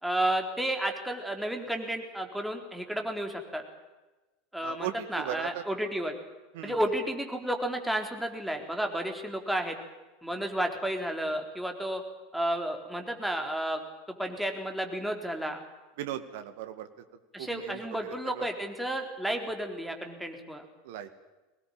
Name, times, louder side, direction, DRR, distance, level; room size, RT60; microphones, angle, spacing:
voice 1, 0.0-3.6 4.5-6.2 6.6-9.8 10.2-12.0 12.3-15.6 17.3-20.6, right 1 dB, ahead, 3 dB, 4.1 m, -32 dB
voice 2, 4.6-5.6 6.5-6.8 10.3-10.4 16.0-16.9 17.4-18.5 20.8-21.1, right 11 dB, 60° right, 10 dB, 2.0 m, -38 dB
23.0 x 20.0 x 9.1 m, 1.1 s
figure-of-eight pair, 80°, 0 cm